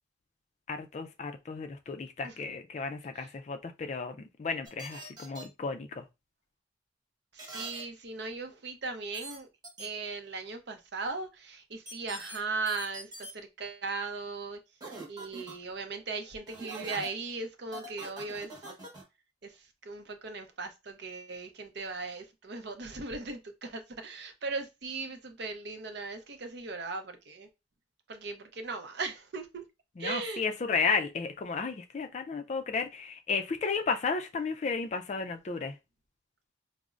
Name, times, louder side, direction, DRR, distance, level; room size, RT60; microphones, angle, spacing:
voice 1, 0.7-6.0 30.0-35.7, left 5 dB, 35° left, 0.3 m, -33 dB
sound 1, 4.7-5.4 7.4-7.8 9.1-9.4 9.6-9.9 11.9-12.4 12.7-13.3 14.8-15.5 16.5-17.1 17.7-19.0, right 1 dB, 20° right, 0.9 m, -43 dB
voice 2, 7.3-9.5 9.8-14.6 15.1-18.6 19.4-27.5 28.1-29.6 30.0-30.4, right 3 dB, 60° right, 0.6 m, -38 dB
4.9 x 2.0 x 2.4 m
head